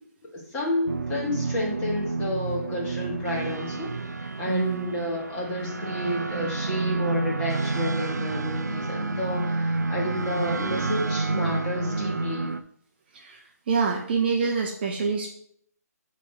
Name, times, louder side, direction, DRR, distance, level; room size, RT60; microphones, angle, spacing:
voice 1, 0.5-3.9 4.2-12.5, left 1 dB, 15° left, -5 dB, 1.6 m, -30 dB
sound 1, 0.9-12.6, right 3 dB, 80° right, 0.5 m, -29 dB
voice 2, 4.5-4.9 13.1-15.3, right 5 dB, 35° right, 2 dB, 0.7 m, -26 dB
6.8 x 3.1 x 4.9 m, 0.66 s
figure-of-eight pair, 150°, 9 cm